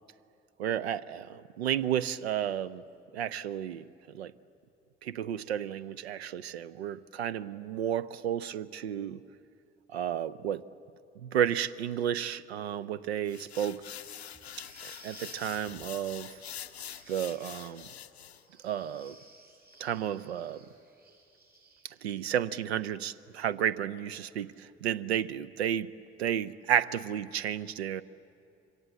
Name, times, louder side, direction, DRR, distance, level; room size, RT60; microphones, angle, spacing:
voice 1, 0.6-2.8 3.1-3.8 4.1-4.3 5.0-9.2 9.9-10.6 11.2-13.8 14.8-16.3 17.1-17.9 18.6-19.2 19.8-20.6 22.0-25.9 26.2-28.0, right 10 dB, 80° right, 19 dB, 0.6 m, -32 dB
sound 1, 13.3-18.4, left 10 dB, 85° left, 0.5 m, -45 dB
sound 2, 13.9-22.2, right 2 dB, 30° right, 6.4 m, -57 dB
26.5 x 23.5 x 7.8 m, 2.6 s
figure-of-eight pair, 50°, 32 cm